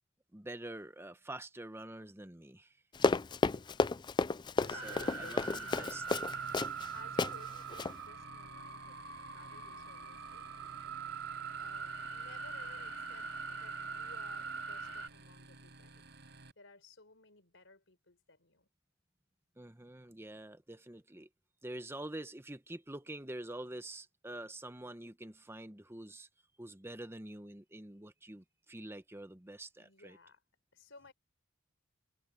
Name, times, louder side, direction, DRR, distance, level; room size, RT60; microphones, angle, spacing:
voice 1, 0.3-2.7 4.7-6.0 19.6-21.3 21.6-26.3 26.6-30.2, right 1 dB, 10° right, 0.9 m, -46 dB
Run, 3.0-6.9 7.2-7.3 7.7-7.9, left 3 dB, 20° left, 0.3 m, -31 dB
voice 2, 3.4-3.9 4.6-6.5 6.9-10.5 11.6-16.0 16.6-18.7 29.8-30.4 30.7-31.1, left 3 dB, 60° left, 4.9 m, -58 dB
sound 1, 4.6-16.5, right 2 dB, 55° right, 6.5 m, -55 dB
sound 2, 4.7-15.1, right 5 dB, 75° right, 3.3 m, -42 dB
head